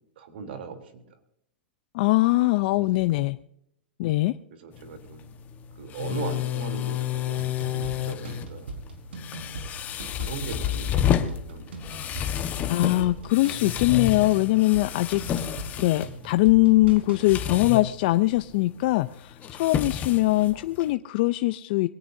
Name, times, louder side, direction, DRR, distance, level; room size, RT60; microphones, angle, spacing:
voice 1, 0.2-1.0 2.8-2.9 4.6-5.2 5.7-8.7 10.0-11.8 20.1-20.3, right 5 dB, 70° right, 6 dB, 3.4 m, -39 dB
voice 2, 1.9-3.4 4.0-4.3 12.7-15.2 15.8-21.9, left 19 dB, 55° left, 11 dB, 0.5 m, -22 dB
sound 1, 4.7-20.9, left 10 dB, 30° left, 1.3 m, -31 dB
sound 2, 7.3-17.7, right 2 dB, 90° right, 4.9 m, -40 dB
22.5 x 17.0 x 2.7 m, 0.77 s
hypercardioid pair, 135°, 6 cm